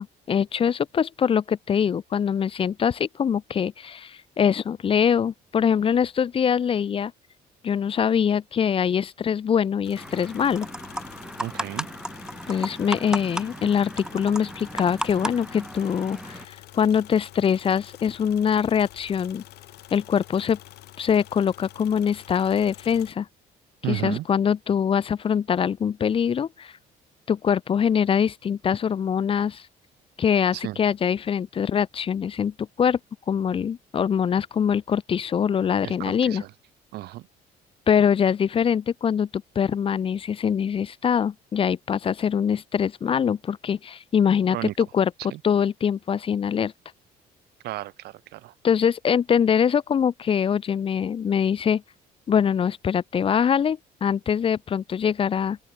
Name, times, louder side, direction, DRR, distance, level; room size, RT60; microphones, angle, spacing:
voice 1, 0.0-7.1 7.6-10.7 12.5-19.4 19.9-20.6 21.0-23.3 23.9-26.7 27.3-29.6 30.2-33.0 33.3-36.4 37.9-45.1 45.4-46.7 48.6-51.8 52.3-55.6, left 7 dB, 35° left, 1.0 m, -23 dB
sound 1, 9.8-23.1, left 16 dB, 80° left, 5.1 m, -47 dB
sound 2, 10.0-16.4, right 1 dB, 5° right, 3.2 m, -35 dB
voice 2, 11.4-11.9 23.8-24.2 30.5-30.8 35.8-36.5 36.9-37.3 44.5-44.7 45.3-45.4 47.6-48.5, right 16 dB, 80° right, 1.5 m, -33 dB
open air
cardioid pair, 145°, 17 cm